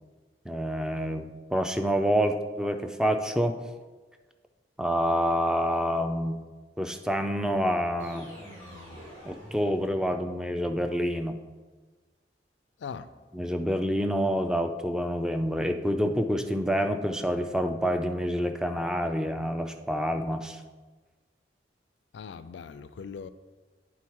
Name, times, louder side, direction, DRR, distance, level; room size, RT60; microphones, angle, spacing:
voice 1, 0.5-3.5 4.8-6.4 6.8-8.3 9.2-11.4 13.3-20.6, equal, 5° right, 7 dB, 0.4 m, -27 dB
sound 1, 8.0-10.3, equal, 35° right, 2.4 m, -47 dB
voice 2, 22.1-23.3, left 6 dB, 85° left, 12 dB, 0.4 m, -40 dB
8.5 x 3.8 x 4.6 m, 1.3 s
head